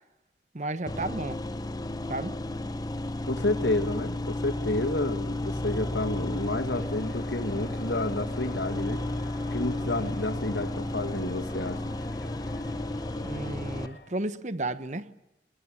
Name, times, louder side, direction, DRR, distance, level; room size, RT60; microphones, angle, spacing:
voice 1, 0.5-1.4 2.1-2.4 9.8-10.1 13.2-15.1, right 2 dB, 40° right, 13 dB, 1.1 m, -33 dB
sound 1, 0.9-13.9, left 1 dB, 20° left, 0.9 m, -33 dB
voice 2, 3.3-9.0 9.5-11.9, left 2 dB, 85° left, 8 dB, 2.2 m, -30 dB
Crowd, 6.0-14.2, left 2 dB, 65° left, 4.8 m, -49 dB
23.0 x 22.0 x 7.2 m, 0.93 s
head